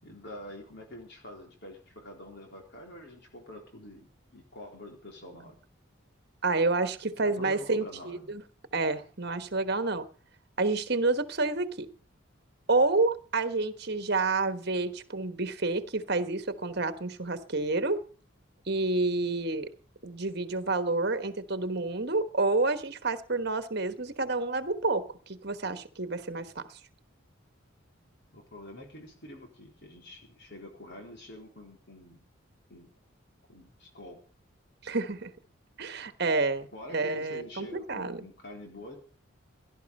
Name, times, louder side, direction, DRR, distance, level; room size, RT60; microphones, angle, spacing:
voice 1, 0.0-5.6 7.2-8.3 28.3-32.2 32.7-32.9 33.5-34.2 36.7-39.0, left 1 dB, 55° left, 1 dB, 4.1 m, -46 dB
voice 2, 6.4-8.4 8.7-10.1 10.6-11.9 12.7-18.0 18.7-19.7 20.0-26.6 34.8-35.3 35.8-38.2, right 3 dB, 50° right, 11 dB, 1.3 m, -29 dB
17.5 x 12.0 x 5.5 m, 0.39 s
head